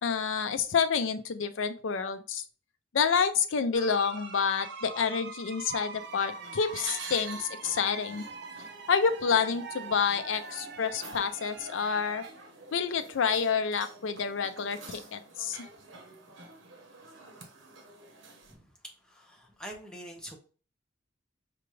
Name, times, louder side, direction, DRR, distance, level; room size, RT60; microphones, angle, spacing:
voice 1, 0.0-2.4 2.9-8.3 8.9-12.2 12.7-15.6, left 6 dB, 85° left, 10 dB, 0.5 m, -28 dB
sound 1, 3.7-12.3, right 4 dB, 60° right, 0.5 m, -43 dB
sound 2, 6.0-18.5, right 3 dB, 80° right, 0.9 m, -48 dB
voice 2, 19.0-20.4, equal, 5° left, 0 dB, 0.8 m, -45 dB
5.8 x 2.4 x 3.1 m, 0.38 s
head